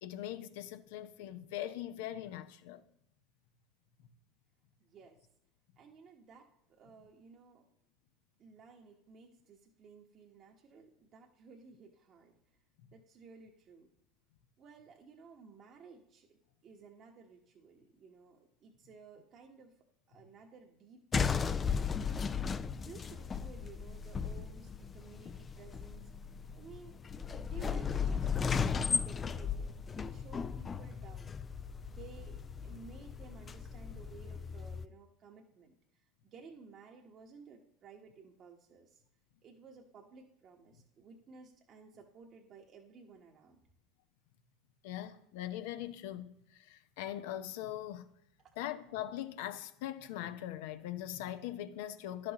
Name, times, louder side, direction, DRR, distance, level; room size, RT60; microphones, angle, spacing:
voice 1, 0.0-2.8 44.8-48.1 48.6-52.3, left 12 dB, 70° left, 0.6 m, -41 dB
voice 2, 4.8-5.2 5.8-7.6 8.4-12.3 12.9-13.9 14.6-19.7 20.1-21.0 21.3-22.1 22.7-26.1 26.5-27.0 27.3-31.3 31.9-35.8 36.2-39.0 39.4-43.6 48.4-48.5, right 5 dB, 45° right, 1.1 m, -56 dB
sound 1, 21.1-34.9, left 6 dB, 30° left, 0.4 m, -36 dB
11.5 x 6.0 x 2.9 m
hypercardioid pair, 80°, 0 cm